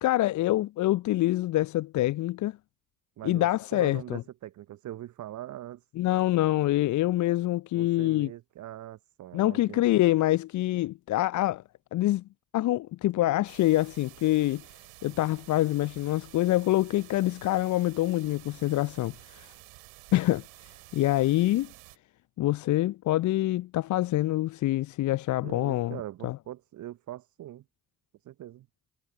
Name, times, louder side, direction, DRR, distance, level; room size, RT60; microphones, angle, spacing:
voice 1, 0.0-2.6 3.2-4.2 6.0-8.3 9.3-11.6 11.9-12.2 12.5-14.6 15.0-19.5 20.1-20.4 20.9-21.7 22.4-26.0 26.2-26.4, left 16 dB, 45° left, 0.6 m, -25 dB
voice 2, 3.2-5.8 7.7-10.0 25.4-27.6 28.2-28.7, right 13 dB, 45° right, 0.8 m, -42 dB
sound 1, 13.5-22.0, right 27 dB, 70° right, 4.4 m, -51 dB
figure-of-eight pair, 40°, 41 cm